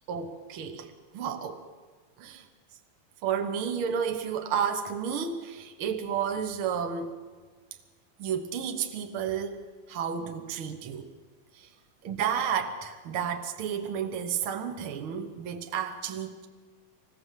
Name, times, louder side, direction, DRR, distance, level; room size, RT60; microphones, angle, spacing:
voice 1, 0.1-1.7 2.2-2.5 3.2-7.1 8.2-11.1 11.5-11.7 12.0-16.5, right 7 dB, 65° right, 1.3 m, -32 dB
25.0 x 19.5 x 7.5 m
omnidirectional pair, 4.2 m